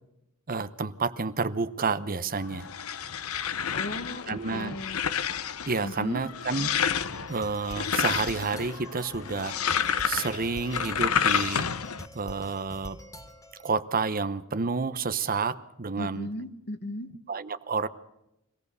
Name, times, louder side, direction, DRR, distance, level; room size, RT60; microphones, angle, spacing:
voice 1, 0.5-2.7 4.3-4.8 5.7-6.7 7.3-9.6 10.0-11.7 12.1-13.0 13.6-16.3 17.3-17.9, right 4 dB, 40° right, 13 dB, 0.9 m, -29 dB
sound 1, 2.4-12.1, left 7 dB, 75° left, 0.8 m, -30 dB
voice 2, 3.7-5.0 5.8-6.2 16.0-17.1, left 1 dB, 50° left, 10 dB, 1.5 m, -36 dB
sound 2, 6.8-13.7, equal, 15° left, 2.2 m, -46 dB
25.0 x 17.5 x 6.9 m, 0.88 s
head